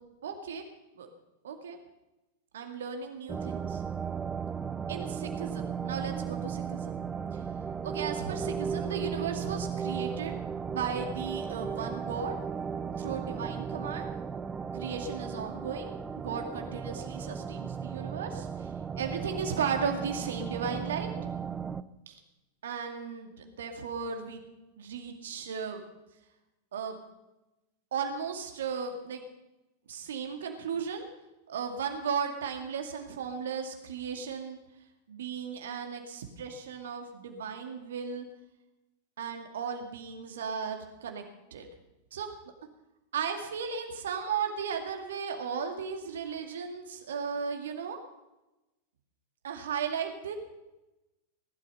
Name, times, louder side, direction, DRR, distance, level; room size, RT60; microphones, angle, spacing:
voice 1, 0.2-0.6 1.0-1.1 1.4-1.8 2.5-3.8 4.9-7.1 7.8-10.4 10.7-12.3 13.0-14.1 14.7-18.7 18.9-21.3 22.1-22.2 22.6-24.4 24.8-25.8 26.7-27.0 27.9-29.2 29.9-31.1 31.5-34.6 35.1-38.2 39.2-41.2 41.5-41.7 42.1-42.3 43.1-48.0 49.4-50.3, right 6 dB, 60° right, 4 dB, 2.2 m, -35 dB
sound 1, 3.3-21.8, right 7 dB, 15° right, 0.6 m, -35 dB
18.5 x 12.5 x 5.6 m, 0.98 s
figure-of-eight pair, 90°, 0 cm